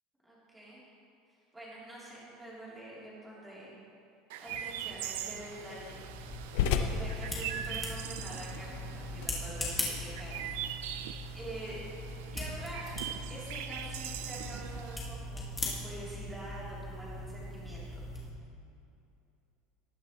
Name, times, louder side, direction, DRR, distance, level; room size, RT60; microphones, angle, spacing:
voice 1, 0.2-0.8 1.5-3.8 4.4-6.0 6.9-10.7 11.3-11.8 12.3-13.0 13.3-18.0, right 1 dB, 10° right, -8 dB, 3.2 m, -46 dB
Chirp tweet, 4.3-15.0, right 11 dB, 80° right, 0.5 m, -42 dB
sound 1, 4.5-10.7, left 7 dB, 70° left, 0.8 m, -38 dB
sound 2, 5.6-18.3, left 1 dB, 10° left, 1.7 m, -40 dB
18.5 x 9.7 x 3.1 m, 2.7 s
cardioid pair, 165°, 0 cm